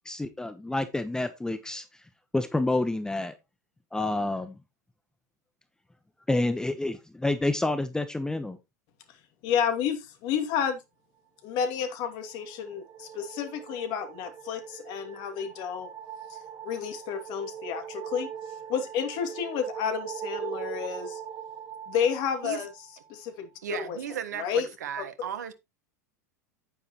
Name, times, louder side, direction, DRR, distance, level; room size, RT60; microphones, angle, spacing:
voice 1, 0.0-1.8 2.3-3.3 3.9-4.6 6.3-8.6, left 2 dB, 5° left, 1.0 m, -28 dB
voice 2, 9.4-10.8 11.4-15.9 16.3-16.4 16.6-18.3 18.7-21.2 21.9-22.7 23.1-24.0 24.4-24.7, left 7 dB, 50° left, 2.6 m, -30 dB
sound 1, 11.7-23.1, right 8 dB, 40° right, 2.2 m, -41 dB
voice 3, 23.6-25.5, right 9 dB, 75° right, 1.4 m, -35 dB
9.7 x 9.3 x 3.1 m
hypercardioid pair, 90°, 9 cm